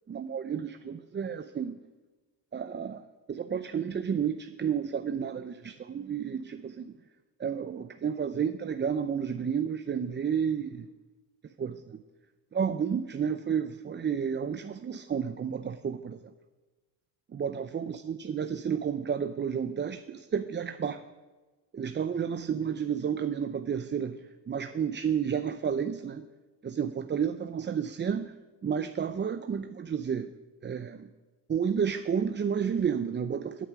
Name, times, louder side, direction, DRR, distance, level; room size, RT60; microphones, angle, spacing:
voice 1, 0.0-1.8 2.5-6.9 7.4-10.9 11.6-12.0 12.5-16.2 17.3-21.0 21.7-26.2 26.6-28.3 28.6-30.3 30.6-31.1 31.5-33.7, right 7 dB, 25° right, 10 dB, 0.6 m, -31 dB
18.0 x 9.3 x 6.1 m, 1.3 s
cardioid pair, 105°, 43 cm